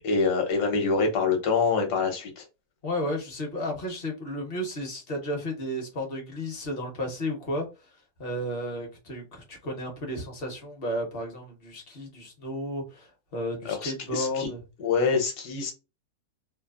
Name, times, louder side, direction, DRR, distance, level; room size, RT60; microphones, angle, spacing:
voice 1, 0.0-2.4 13.6-14.5 14.8-15.7, left 4 dB, 70° left, 1.3 m, -25 dB
voice 2, 2.8-7.7 8.2-14.6, equal, 45° left, 0.8 m, -33 dB
3.1 x 2.0 x 2.3 m
omnidirectional pair, 1.9 m